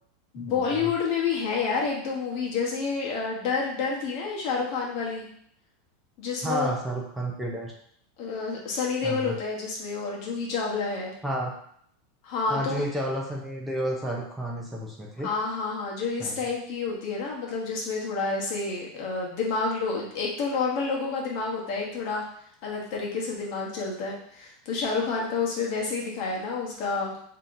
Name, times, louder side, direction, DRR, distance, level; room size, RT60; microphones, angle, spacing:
voice 1, 0.3-5.3 6.2-6.7 8.2-11.1 12.2-12.8 15.2-22.2 22.6-27.1, left 4 dB, 40° left, -2 dB, 1.0 m, -29 dB
voice 2, 6.4-7.7 9.0-9.3 11.2-11.5 12.5-15.3 16.2-16.3, right 1 dB, 5° right, -3 dB, 0.6 m, -31 dB
5.5 x 2.8 x 2.6 m, 0.67 s
supercardioid pair, 170°, 0 cm